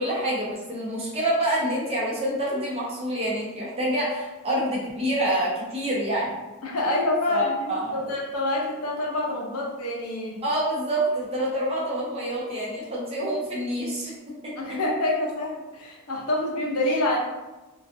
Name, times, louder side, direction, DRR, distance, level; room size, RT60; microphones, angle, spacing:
voice 1, 0.0-6.4 7.3-8.1 10.4-14.1 14.4-14.8, right 1 dB, 25° right, -5 dB, 0.6 m, -27 dB
voice 2, 6.6-10.3 14.6-17.2, left 1 dB, 85° left, -2 dB, 0.6 m, -27 dB
2.5 x 2.3 x 2.5 m, 1.1 s
head